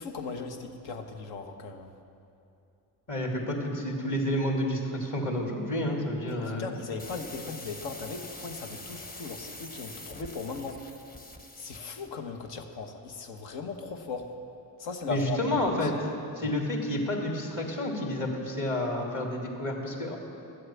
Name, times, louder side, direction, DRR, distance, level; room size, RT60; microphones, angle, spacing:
voice 1, 0.0-1.9 6.3-10.8 11.6-14.3 14.8-15.5 15.8-15.9, left 4 dB, 75° left, 4 dB, 1.3 m, -38 dB
voice 2, 3.1-6.6 15.1-15.9 16.3-20.2, left 1 dB, 40° left, 0 dB, 2.8 m, -30 dB
sound 1, 7.0-12.1, left 2 dB, 20° left, 1.2 m, -45 dB
13.0 x 7.8 x 7.2 m, 2.7 s
hypercardioid pair, 60°, 46 cm